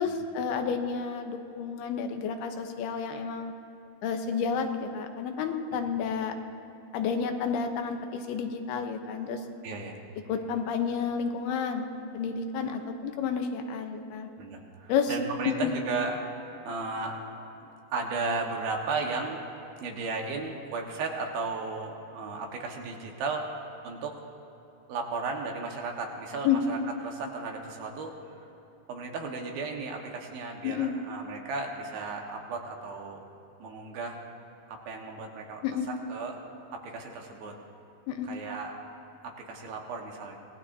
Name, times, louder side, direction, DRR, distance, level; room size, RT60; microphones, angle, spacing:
voice 1, 0.0-3.5 4.0-6.3 6.9-9.4 10.3-11.9 12.1-14.3 14.9-15.1 15.5-15.7 26.4-26.6 30.6-30.9 35.6-35.9 38.1-38.3, left 6 dB, 80° left, 5 dB, 2.9 m, -30 dB
voice 2, 9.6-10.0 14.4-16.2 16.6-17.2 17.9-19.4 19.8-23.5 23.8-24.1 24.9-28.1 28.9-33.3 33.6-34.2 34.7-35.6 35.9-36.4 36.7-37.5 38.2-38.8 39.2-40.4, right 4 dB, 70° right, 1 dB, 3.2 m, -35 dB
26.0 x 18.5 x 2.7 m, 3.0 s
omnidirectional pair, 4.5 m